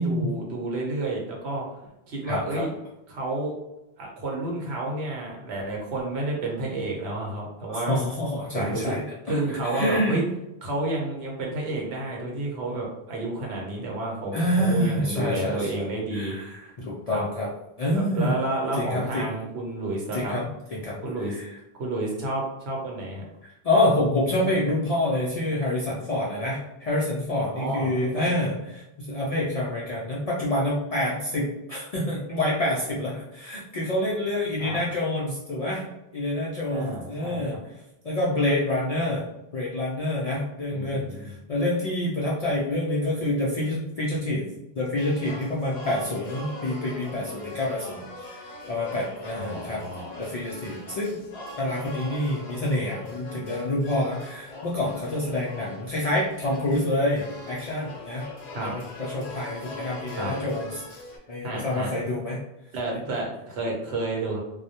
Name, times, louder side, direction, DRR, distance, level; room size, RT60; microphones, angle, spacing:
voice 1, 0.0-1.7 2.1-2.7 3.1-3.6 4.0-8.0 8.5-9.0 9.2-10.2 10.6-16.4 17.1-17.2 17.9-20.4 21.0-21.4 21.8-23.2 27.5-28.3 34.6-34.8 36.7-37.4 40.7-41.3 49.3-50.1 58.5-58.7 60.2-60.3 61.4-61.9 62.7-64.4, right 2 dB, 80° right, -1 dB, 1.0 m, -30 dB
voice 2, 2.2-2.6 7.7-9.4 9.7-10.2 14.3-17.5 17.8-18.3 18.8-19.3 20.1-21.0 21.3-21.5 23.6-35.8 36.1-37.6 38.0-39.2 39.5-44.5 44.7-48.4 48.7-49.8 50.2-51.2 51.6-58.3 58.6-60.8 61.3-62.4, left 1 dB, 55° left, -5 dB, 0.4 m, -27 dB
sound 1, 45.0-61.2, left 2 dB, 85° left, 0.9 m, -41 dB
2.2 x 2.0 x 2.7 m, 0.90 s
omnidirectional pair, 1.1 m